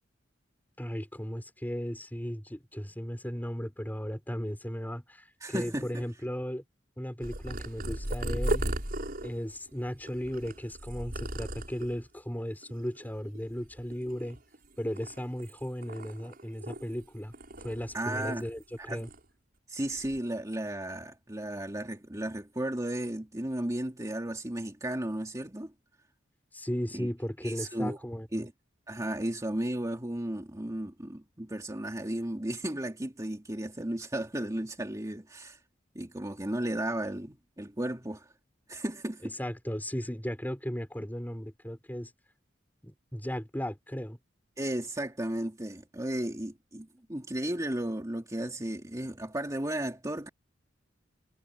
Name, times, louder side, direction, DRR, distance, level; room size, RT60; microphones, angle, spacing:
voice 1, 0.8-6.6 7.0-8.7 9.2-14.4 14.8-17.3 17.6-19.1 26.5-28.5 39.4-42.1 42.8-44.2, equal, 10° left, 4.6 m, -36 dB
voice 2, 5.4-6.0 17.9-18.5 18.9-19.0 19.7-25.7 26.9-27.1 27.4-28.0 28.3-28.5 28.9-35.6 35.9-38.3 38.7-39.4 44.6-50.3, right 1 dB, 20° right, 2.5 m, -34 dB
Purr, 7.2-12.0 12.6-13.1 13.3-14.6 15.0-17.0 17.3-18.6 18.9-19.2 19.9-20.2, right 1 dB, 50° right, 6.4 m, -36 dB
head